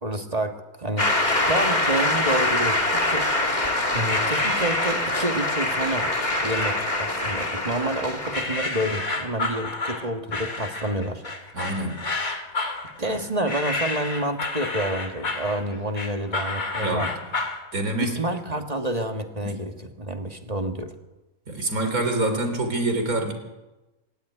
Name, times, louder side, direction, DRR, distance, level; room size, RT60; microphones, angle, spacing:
voice 1, 0.0-3.3 3.9-11.2 13.0-17.1 18.0-20.9, right 1 dB, 30° right, 6 dB, 1.7 m, -29 dB
Shout / Cheering / Applause, 1.0-8.4, left 2 dB, 30° left, 2.9 m, -24 dB
sound 1, 4.1-5.4 6.2-7.0 7.4-8.0 8.3-17.6, left 3 dB, 75° left, 3.2 m, -30 dB
voice 2, 11.5-12.1 16.8-17.2 17.7-18.2 19.4-19.6 21.5-23.3, right 2 dB, 90° right, 5 dB, 4.0 m, -26 dB
25.0 x 12.0 x 10.0 m, 1.1 s
omnidirectional pair, 1.5 m